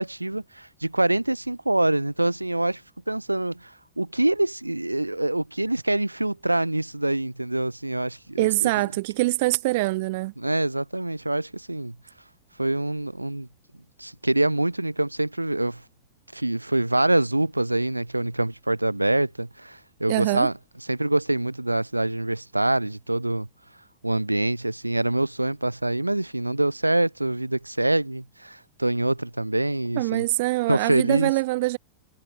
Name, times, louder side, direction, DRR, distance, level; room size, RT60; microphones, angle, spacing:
voice 1, 0.0-2.8 3.1-8.8 10.4-11.9 12.6-13.5 14.0-15.8 16.3-20.5 20.8-23.5 24.0-30.2 30.7-31.3, right 1 dB, 85° right, 1.5 m, -25 dB
voice 2, 8.4-10.3 20.1-20.5 29.9-31.8, right 21 dB, 50° right, 1.1 m, -24 dB
figure-of-eight pair, 90°, 0 cm